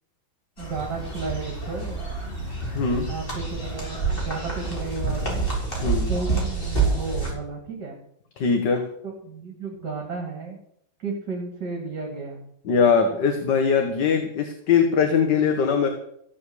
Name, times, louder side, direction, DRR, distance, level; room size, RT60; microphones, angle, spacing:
sound 1, 0.6-7.3, right 4 dB, 25° left, 5.0 m, -27 dB
voice 1, 0.6-2.1 2.9-5.4 6.1-8.0 9.0-10.6 11.0-12.4, right 4 dB, 60° right, -1 dB, 3.4 m, -33 dB
voice 2, 2.8-3.1 5.8-6.1 8.4-8.9 12.7-15.9, left 6 dB, 60° left, 5 dB, 2.0 m, -21 dB
15.0 x 7.8 x 8.3 m, 0.71 s
omnidirectional pair, 2.1 m